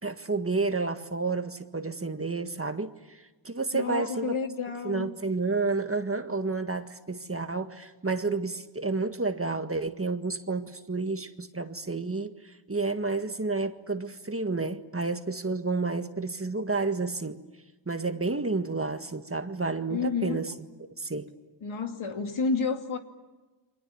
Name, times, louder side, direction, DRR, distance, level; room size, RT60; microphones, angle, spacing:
voice 1, 0.0-4.4 4.8-17.4 17.8-20.5 21.0-21.3, right 3 dB, 25° right, 1.7 m, -30 dB
voice 2, 3.7-5.1 19.9-20.4 21.6-23.0, left 5 dB, 70° left, 2.7 m, -30 dB
30.0 x 25.0 x 7.2 m
cardioid pair, 65°, 50 cm